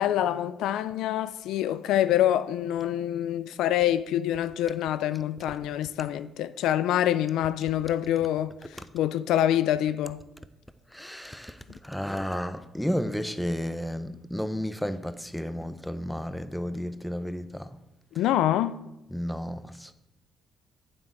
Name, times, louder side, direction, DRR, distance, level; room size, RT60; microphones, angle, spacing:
voice 1, 0.0-8.5 8.9-10.2 18.2-18.8, left 12 dB, 90° left, 0.3 m, -26 dB
voice 2, 10.9-17.7 19.1-19.9, equal, 5° left, 0.6 m, -32 dB
8.8 x 7.5 x 4.6 m
cardioid pair, 90°, 0 cm